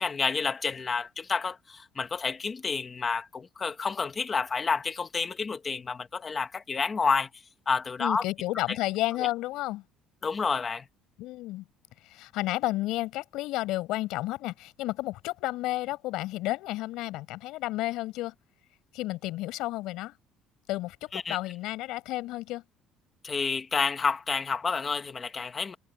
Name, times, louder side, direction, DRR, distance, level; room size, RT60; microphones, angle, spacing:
voice 1, 0.0-7.3 7.7-8.2 9.2-9.3 10.2-10.8 21.1-21.4 23.2-25.7, left 5 dB, 20° left, 1.3 m, -29 dB
voice 2, 8.0-9.8 11.2-11.6 12.0-18.3 18.9-20.1 20.7-22.6, left 17 dB, 65° left, 5.5 m, -32 dB
cardioid pair, 175°, 0 cm